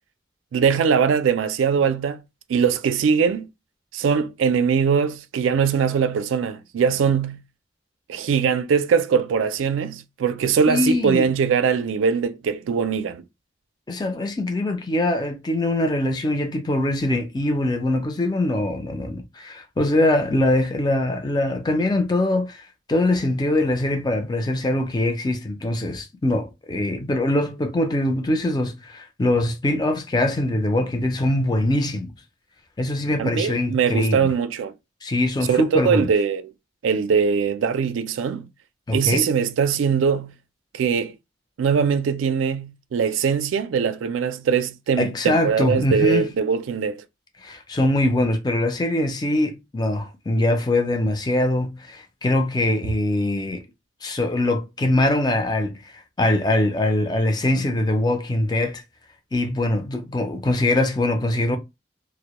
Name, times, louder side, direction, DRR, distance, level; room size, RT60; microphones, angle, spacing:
voice 1, 0.5-2.2 2.5-3.5 3.9-7.4 8.1-13.2 33.2-34.7 35.5-36.5 36.8-38.5 38.9-40.3 40.7-41.1 41.6-47.0, right 6 dB, 90° right, 0.3 m, -21 dB
voice 2, 10.7-11.3 13.9-22.6 22.9-32.1 32.8-34.2 35.0-36.1 38.9-39.3 45.0-46.3 47.4-53.6 54.0-55.8 56.2-58.8 59.3-61.6, left 1 dB, 20° left, 0.4 m, -22 dB
2.1 x 2.0 x 2.9 m
head